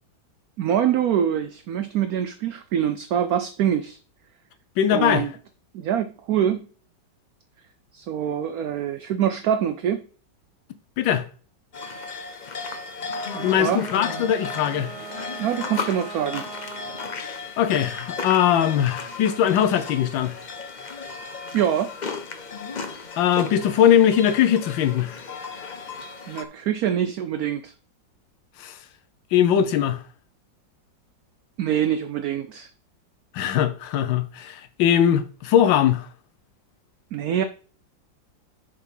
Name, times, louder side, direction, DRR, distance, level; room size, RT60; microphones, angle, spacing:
voice 1, 0.6-4.0 4.9-5.3 5.7-6.7 7.9-10.1 13.3-13.8 15.4-16.5 21.5-21.9 26.3-27.7 31.6-32.7 37.1-37.4, right 9 dB, 70° right, 0.9 m, -24 dB
voice 2, 4.8-5.3 11.0-11.2 13.4-14.9 17.6-20.4 23.2-25.2 28.6-28.8 29.3-30.0 33.3-36.1, left 9 dB, 85° left, 1.5 m, -20 dB
sound 1, 11.7-26.4, left 4 dB, 65° left, 0.4 m, -35 dB
Bowed string instrument, 13.0-17.3, right 6 dB, 15° right, 2.0 m, -40 dB
6.7 x 4.7 x 5.4 m
omnidirectional pair, 2.0 m